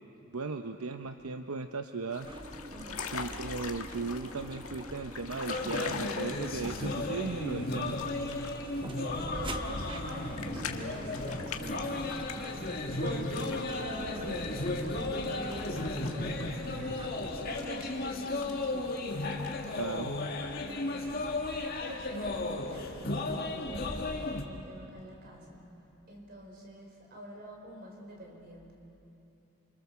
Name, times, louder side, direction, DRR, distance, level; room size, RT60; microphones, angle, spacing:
voice 1, 0.3-2.3 3.1-8.0 19.8-20.2, right 4 dB, 75° right, 7 dB, 0.8 m, -37 dB
sound 1, 2.1-19.8, left 5 dB, 75° left, 1.7 m, -45 dB
sound 2, 2.2-17.7, right 1 dB, 20° right, 1.0 m, -46 dB
voice 2, 2.7-3.1 8.6-12.5 13.0-19.3 19.6-20.0 20.3-21.2 21.8-25.6 26.1-28.7, equal, 45° right, 0 dB, 5.0 m, -45 dB
sound 3, 5.5-24.4, left 2 dB, 40° left, 2.0 m, -35 dB
29.5 x 26.5 x 7.0 m, 2.9 s
head